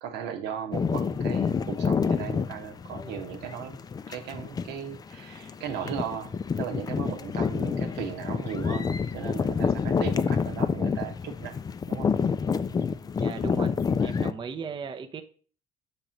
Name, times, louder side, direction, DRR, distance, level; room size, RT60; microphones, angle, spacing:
voice 1, 0.0-3.8 4.1-11.6 11.9-12.1 14.2-14.3, right 8 dB, 85° right, 5 dB, 1.0 m, -37 dB
sound 1, 0.7-14.3, left 5 dB, 25° left, 0.3 m, -28 dB
voice 2, 13.2-13.7 14.0-15.2, right 6 dB, 30° right, 7 dB, 0.5 m, -37 dB
6.7 x 3.0 x 5.0 m, 0.41 s
cardioid pair, 110°, 17 cm